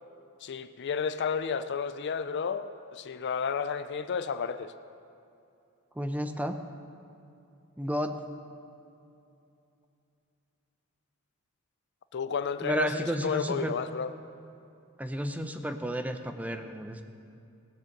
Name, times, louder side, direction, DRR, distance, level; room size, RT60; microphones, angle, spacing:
voice 1, 0.4-4.7 12.1-14.1, left 6 dB, 55° left, 12 dB, 0.4 m, -32 dB
voice 2, 6.0-6.6 7.8-8.2 12.6-13.7 15.0-17.0, equal, 5° right, 7 dB, 0.6 m, -32 dB
17.5 x 7.5 x 6.6 m, 2.7 s
head